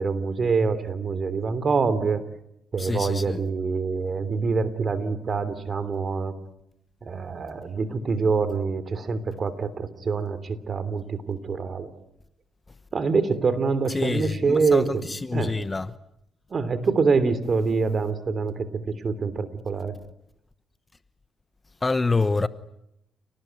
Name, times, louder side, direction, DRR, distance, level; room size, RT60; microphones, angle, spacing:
voice 1, 0.0-2.2 2.7-6.3 7.0-11.9 12.9-15.0 15.3-15.6 16.5-18.6 19.0-20.0, right 4 dB, 40° right, 3.2 m, -25 dB
voice 2, 2.8-3.4 13.9-15.9 21.8-22.5, left 3 dB, 20° left, 1.1 m, -26 dB
29.5 x 19.0 x 9.6 m
cardioid pair, 90°, 0 cm